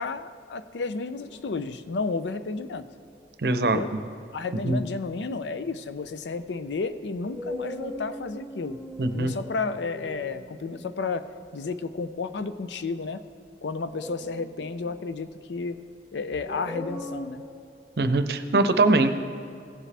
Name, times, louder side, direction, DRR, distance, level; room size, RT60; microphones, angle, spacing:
voice 1, 0.0-2.9 3.6-3.9 4.3-8.8 9.1-11.3 11.5-13.2 13.6-15.8 16.1-17.4, left 4 dB, 85° left, 12 dB, 0.5 m, -32 dB
sound 1, 1.2-1.5 2.4-3.0 6.0-6.1 7.2-11.1 13.9-15.2 16.3-17.5, left 1 dB, 10° left, 1.8 m, -39 dB
voice 2, 3.4-3.8 4.6-4.8 9.0-9.3 18.0-19.1, right 2 dB, 65° right, 9 dB, 0.6 m, -22 dB
16.5 x 7.4 x 3.4 m, 2.4 s
head